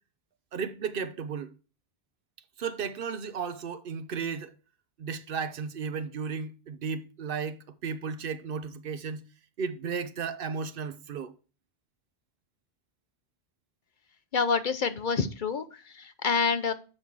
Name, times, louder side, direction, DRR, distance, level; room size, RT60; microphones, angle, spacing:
voice 1, 0.5-1.5 2.6-4.5 5.0-9.2 9.6-11.3, right 6 dB, 60° right, 0.8 m, -34 dB
voice 2, 14.3-15.6 16.0-16.7, left 5 dB, 55° left, 0.8 m, -27 dB
7.8 x 5.4 x 4.6 m
omnidirectional pair, 1.1 m